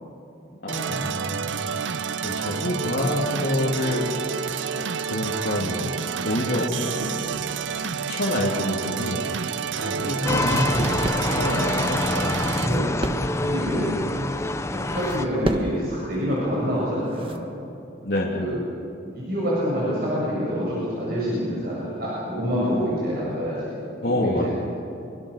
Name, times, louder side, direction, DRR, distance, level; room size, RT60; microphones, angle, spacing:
voice 1, 0.6-4.5 4.8-5.9 6.2-7.3 7.7-9.2 9.7-12.0 13.7-14.2 18.0-18.5 24.0-24.5, left 1 dB, 60° left, -4 dB, 2.9 m, -27 dB
sound 1, 0.7-12.7, right 6 dB, 90° right, 0.7 m, -29 dB
sound 2, 10.2-15.2, left 2 dB, 15° left, 0.7 m, -26 dB
sound 3, 10.4-17.5, right 1 dB, 30° right, 1.4 m, -35 dB
voice 2, 12.5-13.1 13.4-13.9 14.8-17.3 18.3-18.5 19.1-23.7 24.0-24.5, equal, 55° right, -7 dB, 7.6 m, -27 dB
26.5 x 24.0 x 6.6 m, 2.7 s
head